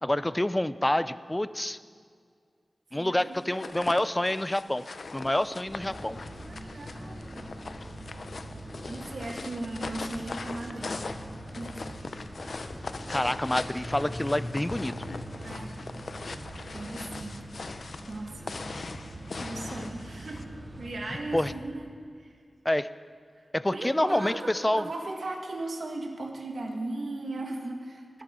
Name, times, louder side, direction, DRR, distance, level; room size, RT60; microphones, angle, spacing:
voice 1, 0.0-1.8 2.9-4.8 5.1-6.2 13.1-14.9 21.3-21.5 22.7-22.9 23.5-24.8, left 1 dB, 15° left, 14 dB, 0.4 m, -27 dB
voice 2, 2.9-4.0 6.4-7.5 8.8-11.1 11.5-12.1 15.4-15.8 16.7-17.4 18.1-18.6 19.4-20.4 20.8-21.9 22.2-22.4 23.4-28.2, right 2 dB, 75° right, 1 dB, 1.7 m, -38 dB
sound 1, 3.4-20.4, left 3 dB, 65° left, 0.6 m, -41 dB
sound 2, 5.6-21.5, equal, 30° right, 2.1 m, -42 dB
19.0 x 12.5 x 3.7 m, 2.2 s
wide cardioid pair, 105°, 0 cm